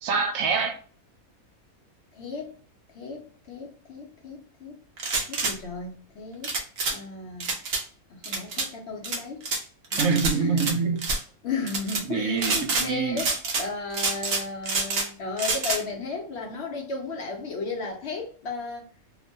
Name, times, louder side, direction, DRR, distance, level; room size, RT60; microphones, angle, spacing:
voice 1, 0.0-0.8 10.0-11.1 12.1-13.2, right 5 dB, 80° right, 1.0 m, -25 dB
voice 2, 2.1-2.6 2.9-4.8 5.3-6.5 6.9-7.5 8.1-9.5 9.9-10.7 11.4-18.9, left 4 dB, 60° left, 0.8 m, -34 dB
sound 1, 5.0-5.5 6.4-7.0 7.4-7.8 8.2-8.7 9.0-9.6 9.9-10.7 11.0-11.2 11.7-12.0 12.4-12.9 13.2-13.7 13.9-15.1 15.4-15.8, right 3 dB, 55° right, 0.8 m, -27 dB
2.9 x 2.1 x 2.6 m
omnidirectional pair, 1.5 m